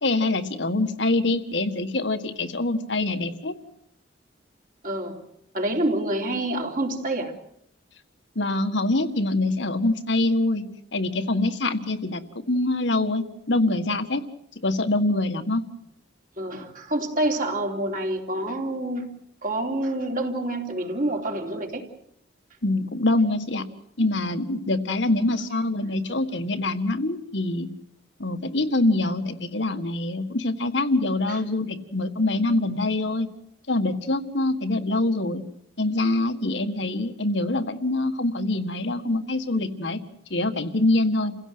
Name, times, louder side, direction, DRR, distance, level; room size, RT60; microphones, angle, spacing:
voice 1, 0.0-3.5 8.4-10.6 10.9-14.2 14.6-15.6 22.6-23.6 24.0-27.7 28.2-33.3 33.7-35.4 35.8-40.0 40.3-41.4, left 2 dB, 70° left, 8 dB, 1.8 m, -24 dB
voice 2, 4.8-5.3 5.5-7.3 16.4-19.1 19.4-21.8 31.3-31.4, right 1 dB, 45° right, 2 dB, 3.4 m, -27 dB
29.0 x 16.5 x 7.9 m, 0.73 s
head